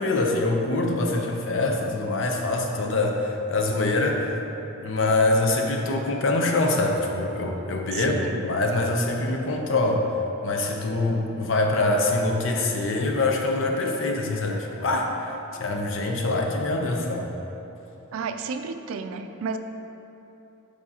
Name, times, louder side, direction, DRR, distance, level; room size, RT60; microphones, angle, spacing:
voice 1, 0.0-4.3 4.8-10.0 10.4-17.3, left 2 dB, 65° left, 2 dB, 0.6 m, -24 dB
voice 2, 7.9-8.4 18.1-19.6, right 5 dB, 90° right, 8 dB, 0.4 m, -32 dB
7.0 x 5.0 x 2.8 m, 3.0 s
head